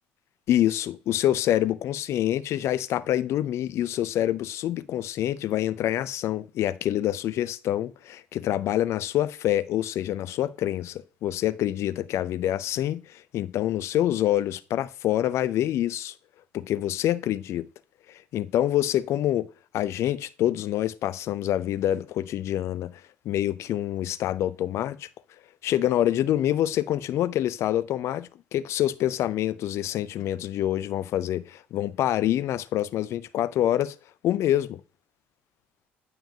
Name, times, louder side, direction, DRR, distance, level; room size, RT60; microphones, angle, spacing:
voice 1, 0.5-16.1 16.5-17.7 18.1-19.5 19.7-23.0 23.3-25.1 25.6-34.0 34.2-34.8, left 12 dB, 55° left, 0.4 m, -26 dB
9.1 x 5.8 x 2.8 m
hypercardioid pair, 60°, 6 cm